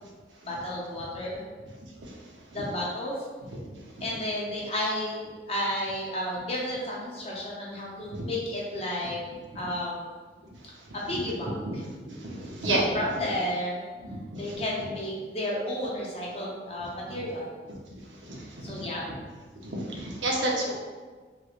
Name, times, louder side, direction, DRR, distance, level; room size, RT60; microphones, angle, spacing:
voice 1, 0.4-1.4 2.5-3.1 4.0-9.2 9.5-10.2 10.9-11.5 12.7-13.8 14.3-17.4 18.6-19.0, left 1 dB, 35° left, -4 dB, 0.7 m, -32 dB
voice 2, 3.7-4.1 8.1-8.3 11.1-11.2 11.7-11.8 12.1-13.0 14.1-14.6 17.1-17.2 18.2-19.2 19.6-20.7, right 1 dB, 85° right, -2 dB, 0.7 m, -31 dB
3.1 x 3.1 x 2.4 m, 1.4 s
head